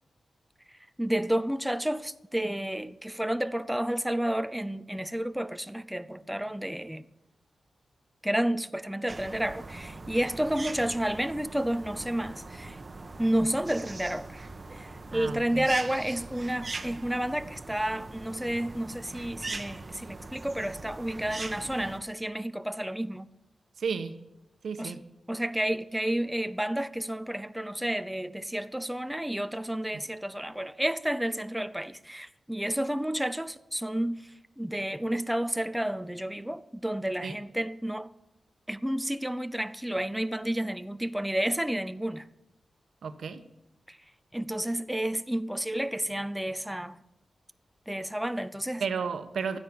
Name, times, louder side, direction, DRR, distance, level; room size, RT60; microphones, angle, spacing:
voice 1, 1.0-7.1 8.2-12.8 13.2-14.4 14.7-23.3 24.8-25.0 25.3-38.1 38.7-42.3 43.9-44.0 44.3-47.0 47.9-48.8, right 1 dB, 5° right, 0.7 m, -31 dB
sound 1, 9.1-22.0, right 3 dB, 40° right, 1.2 m, -41 dB
voice 2, 15.1-15.6 23.8-24.2 24.6-25.0 37.2-37.4 43.0-43.4 48.8-49.6, right 6 dB, 80° right, 1.3 m, -33 dB
13.0 x 9.8 x 8.8 m
cardioid pair, 75°, 0 cm